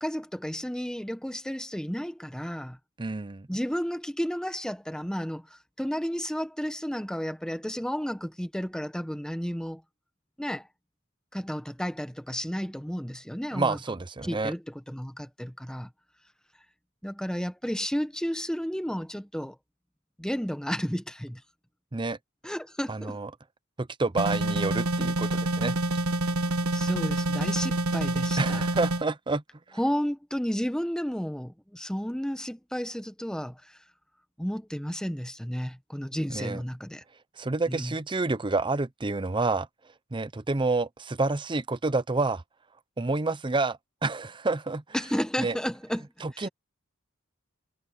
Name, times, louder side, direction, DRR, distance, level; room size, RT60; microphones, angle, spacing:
voice 1, 0.0-2.8 3.5-9.8 10.4-10.7 11.3-13.8 14.2-15.9 17.0-19.6 20.2-21.4 22.4-23.2 26.7-28.7 29.8-33.8 34.4-37.0 37.7-37.9 44.9-46.1 46.4-46.5, equal, 5° left, 1.1 m, -32 dB
voice 2, 3.0-3.5 13.5-14.5 21.9-22.2 22.9-23.3 23.8-25.8 28.4-29.4 36.3-36.6 37.4-39.7 40.1-42.4 43.0-44.8 45.4-45.6 46.2-46.5, right 3 dB, 25° right, 0.7 m, -28 dB
sound 1, 24.2-29.0, right 2 dB, 85° right, 1.3 m, -27 dB
head